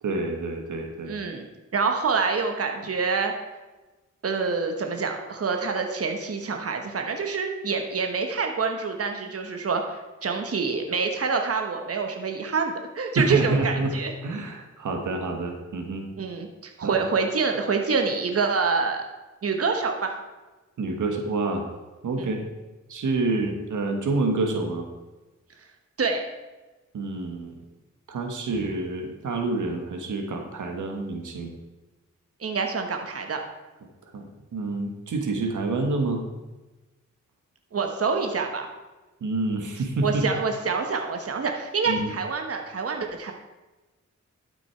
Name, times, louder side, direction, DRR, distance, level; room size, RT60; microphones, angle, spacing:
voice 1, 0.0-1.1 13.1-16.1 16.8-17.0 20.8-21.7 22.0-22.4 22.9-24.9 26.9-27.5 28.1-31.5 34.1-34.3 34.5-36.2 39.2-40.3 41.9-42.1, right 3 dB, 85° right, 4 dB, 1.3 m, -28 dB
voice 2, 1.1-1.5 1.7-3.3 4.2-14.1 16.2-19.0 19.4-20.1 22.2-22.3 26.0-26.2 32.4-33.4 37.7-38.7 40.0-43.3, right 4 dB, 50° right, 4 dB, 1.2 m, -26 dB
12.0 x 6.1 x 4.5 m, 1.1 s
cardioid pair, 70°, 30 cm